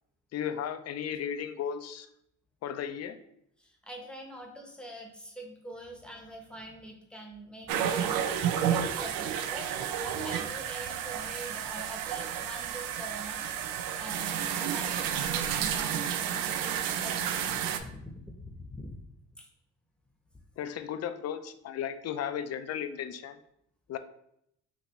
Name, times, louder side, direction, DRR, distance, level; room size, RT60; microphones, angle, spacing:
voice 1, 0.3-2.1 2.6-3.2 20.6-23.4 23.9-24.0, left 8 dB, 50° left, 10 dB, 0.5 m, -35 dB
voice 2, 3.6-13.5 14.0-17.2 17.5-18.9 19.4-19.5, right 1 dB, 5° left, 1 dB, 0.9 m, -44 dB
sound 1, 7.7-17.8, right 9 dB, 85° right, 0.5 m, -31 dB
5.8 x 2.7 x 3.0 m, 0.75 s
cardioid pair, 105°, 34 cm